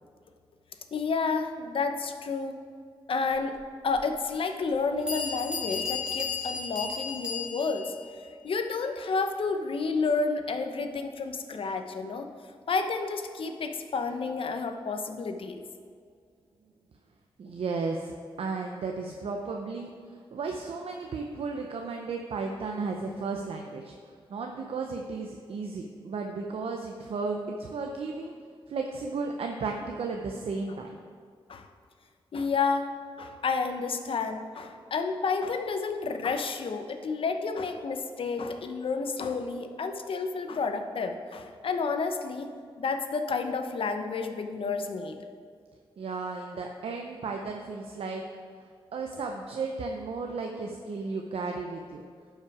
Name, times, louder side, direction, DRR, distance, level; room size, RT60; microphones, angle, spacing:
voice 1, 0.9-2.6 3.1-3.6 3.8-7.9 8.4-12.3 12.7-15.6 31.5-31.7 32.3-32.9 33.2-45.2, left 4 dB, 70° left, 7 dB, 0.8 m, -30 dB
Bell, 3.9-4.0 4.7-4.8 5.1-7.9, left 5 dB, 10° right, 2.4 m, -34 dB
voice 2, 17.4-18.1 18.4-19.9 20.3-23.9 24.3-28.4 28.7-31.0 46.0-48.2 48.9-52.0, right 4 dB, 80° right, 2 dB, 0.7 m, -34 dB
11.5 x 5.6 x 4.8 m, 2.1 s
wide cardioid pair, 95°, 10 cm